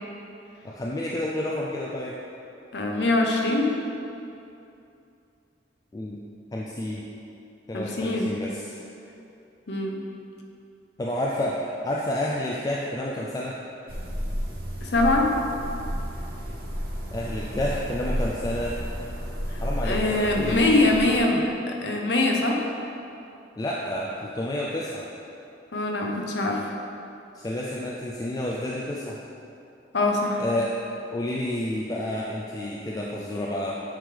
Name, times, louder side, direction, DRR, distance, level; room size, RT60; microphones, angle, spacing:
voice 1, 0.6-2.2 5.9-6.2 6.5-7.1 7.7-8.7 11.0-13.6 17.1-18.8 19.6-20.6 23.6-25.1 27.3-29.2 30.4-30.8 31.1-33.8, left 1 dB, 20° left, -4 dB, 0.3 m, -30 dB
voice 2, 2.7-3.8 7.7-8.3 9.7-10.0 14.8-15.3 19.5-22.6 25.7-26.7 29.9-30.4, left 2 dB, 65° left, 1 dB, 0.7 m, -23 dB
sound 1, 13.9-21.2, equal, 55° right, 0.9 m, -32 dB
8.8 x 3.3 x 3.7 m, 2.7 s
head